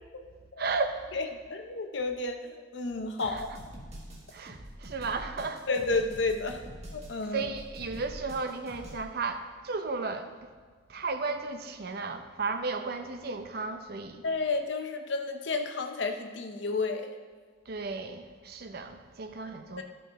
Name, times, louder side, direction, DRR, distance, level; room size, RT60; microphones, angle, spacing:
voice 1, 0.6-1.2 3.2-3.4 4.3-5.7 7.3-10.5 10.9-14.2 17.7-19.8, right 4 dB, 50° right, 8 dB, 0.6 m, -34 dB
voice 2, 1.1-3.6 5.7-6.6 6.9-7.5 14.2-17.1 19.4-19.8, left 3 dB, 65° left, 6 dB, 0.7 m, -31 dB
sound 1, 3.2-9.0, equal, 35° right, 1.7 m, -45 dB
13.0 x 5.5 x 3.7 m, 1.5 s
head